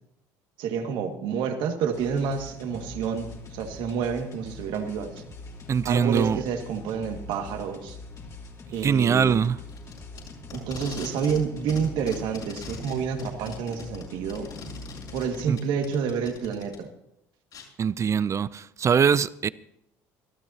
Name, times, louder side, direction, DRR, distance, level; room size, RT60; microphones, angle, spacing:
voice 1, 0.6-5.1 5.8-8.0 8.7-9.4 10.5-14.5 15.1-16.9, right 6 dB, 70° right, 1.9 m, -29 dB
war zone battle music, 1.9-15.5, left 2 dB, 40° left, 3.6 m, -43 dB
voice 2, 5.7-6.4 8.8-9.6 15.5-15.6 17.8-19.5, right 7 dB, 35° right, 0.5 m, -22 dB
Packing tape duct tape, 9.7-11.4 11.7-16.8 17.5-17.6, left 5 dB, 55° left, 6.2 m, -41 dB
25.0 x 13.0 x 2.8 m
hypercardioid pair, 70°, 8 cm